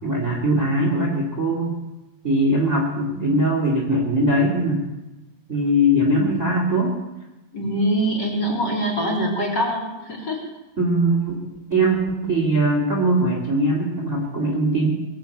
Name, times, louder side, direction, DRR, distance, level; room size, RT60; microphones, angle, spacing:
voice 1, 0.0-1.7 2.2-4.9 5.5-7.0 10.8-11.4 11.7-14.9, right 1 dB, 25° right, -1 dB, 2.4 m, -21 dB
voice 2, 7.5-10.4, equal, 35° left, -4 dB, 4.2 m, -23 dB
21.5 x 7.4 x 8.3 m, 1.0 s
omnidirectional pair, 3.5 m